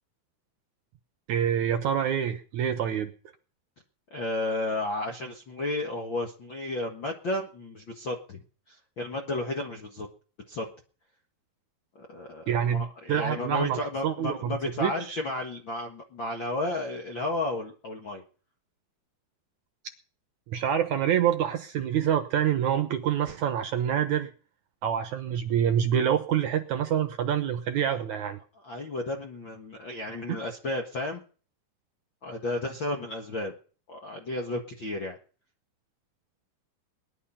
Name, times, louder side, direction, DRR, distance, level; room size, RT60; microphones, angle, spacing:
voice 1, 1.3-3.1 12.5-15.2 20.5-24.3 24.8-28.4 30.3-30.4, right 9 dB, 65° right, 8 dB, 2.0 m, -26 dB
voice 2, 4.1-8.4 8.7-10.1 10.5-10.7 11.9-18.2 27.8-28.2 28.6-31.2 32.2-33.5 33.9-35.2, left 2 dB, 55° left, 2 dB, 1.3 m, -33 dB
19.0 x 11.5 x 5.6 m, 0.40 s
omnidirectional pair, 4.4 m